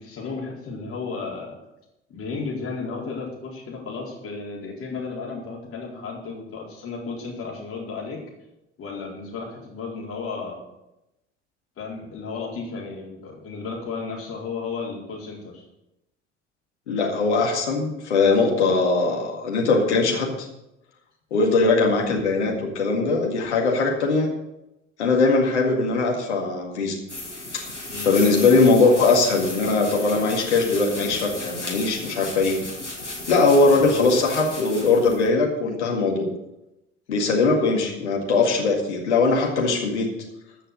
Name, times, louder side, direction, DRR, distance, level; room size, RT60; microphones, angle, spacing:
voice 1, 0.0-1.5 2.1-8.2 8.8-10.6 11.8-15.6 21.5-21.7 27.9-28.1 33.7-34.0, left 4 dB, 40° left, -3 dB, 4.3 m, -33 dB
voice 2, 16.9-20.3 21.3-24.3 25.0-27.0 27.5-27.6 28.0-32.6 33.3-36.3 37.1-40.1, left 3 dB, 75° left, 1 dB, 2.0 m, -20 dB
sound 1, 27.1-35.3, left 2 dB, 90° left, 1.9 m, -35 dB
14.0 x 6.7 x 6.3 m, 0.91 s
figure-of-eight pair, 60°, 35 cm